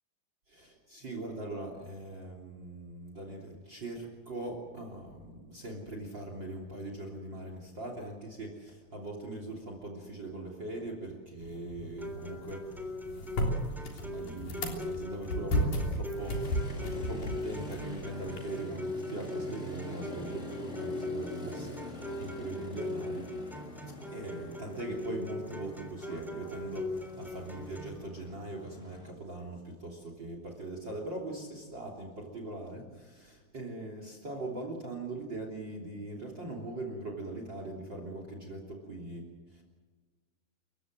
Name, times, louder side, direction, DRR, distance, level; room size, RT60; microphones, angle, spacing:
voice 1, 0.5-12.7 13.2-16.5 16.7-23.3 24.1-39.6, right 2 dB, 30° right, 3 dB, 3.6 m, -41 dB
sound 1, 11.4-18.4, equal, 70° left, 5.3 m, -35 dB
sound 2, 12.0-28.0, left 2 dB, ahead, 2.8 m, -41 dB
Motorcycle, 16.1-29.1, left 1 dB, 20° left, 2.6 m, -45 dB
29.0 x 16.0 x 7.7 m, 1.4 s
omnidirectional pair, 4.3 m